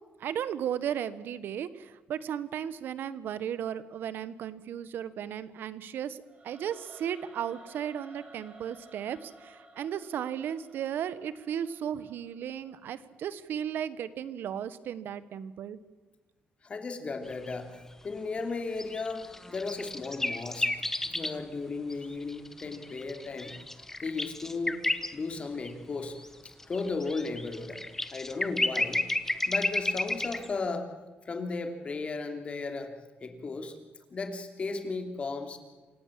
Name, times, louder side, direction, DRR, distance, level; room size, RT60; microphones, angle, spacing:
voice 1, 0.2-15.8, right 9 dB, 70° right, 15 dB, 1.3 m, -35 dB
Singing / Musical instrument, 6.2-13.3, right 2 dB, 35° right, 5.7 m, -54 dB
voice 2, 16.6-17.7 18.0-20.7 21.0-23.6 24.0-24.8 25.1-26.2 26.7-27.8 28.1-29.1 29.5-30.9 31.2-32.9 33.2-33.8 34.1-35.6, left 3 dB, 35° left, 6 dB, 3.0 m, -35 dB
sound 1, 17.3-17.5 18.8-21.4 21.9-25.1 25.7-25.8 26.2-30.5, left 2 dB, 10° left, 1.2 m, -32 dB
27.5 x 17.0 x 7.6 m, 1.3 s
cardioid pair, 125°, 4 cm